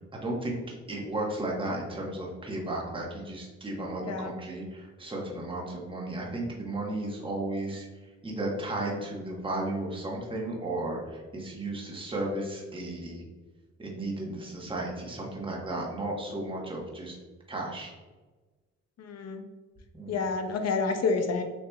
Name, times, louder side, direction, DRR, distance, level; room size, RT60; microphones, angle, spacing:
voice 1, 0.1-0.6 0.9-7.9 8.2-13.2 13.8-17.2 17.5-17.9 19.9-20.2, right 1 dB, 15° right, -2 dB, 1.1 m, -34 dB
voice 2, 4.0-4.3 19.0-19.4 20.1-21.4, left 4 dB, 55° left, 6 dB, 0.7 m, -29 dB
6.8 x 3.0 x 2.3 m, 1.3 s
cardioid pair, 90°, 30 cm